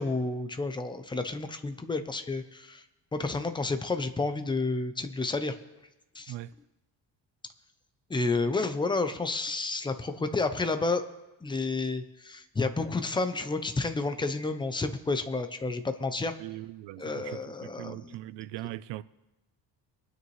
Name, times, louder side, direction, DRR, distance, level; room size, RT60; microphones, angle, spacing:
voice 1, 0.0-2.8 3.1-5.6 6.1-6.3 8.1-11.0 11.4-16.3 17.0-18.1, left 3 dB, 10° left, 0.5 m, -30 dB
voice 2, 16.4-19.0, right 15 dB, 85° right, 0.6 m, -40 dB
22.5 x 9.5 x 3.2 m
cardioid pair, 170°, 42 cm